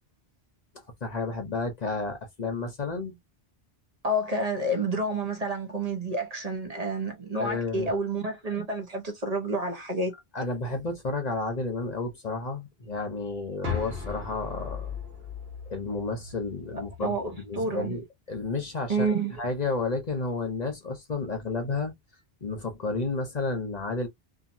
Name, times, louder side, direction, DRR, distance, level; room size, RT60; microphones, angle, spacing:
voice 1, 1.0-3.2 7.4-7.9 10.3-15.0 15.7-17.2 17.4-19.1 19.4-22.0 22.4-24.1, left 3 dB, 45° left, 0.8 m, -31 dB
voice 2, 4.0-10.1 16.7-18.0 18.9-19.4, right 2 dB, 40° right, 0.9 m, -29 dB
sound 1, 13.6-17.6, left 5 dB, 70° right, 1.4 m, -37 dB
2.8 x 2.7 x 2.5 m
omnidirectional pair, 1.1 m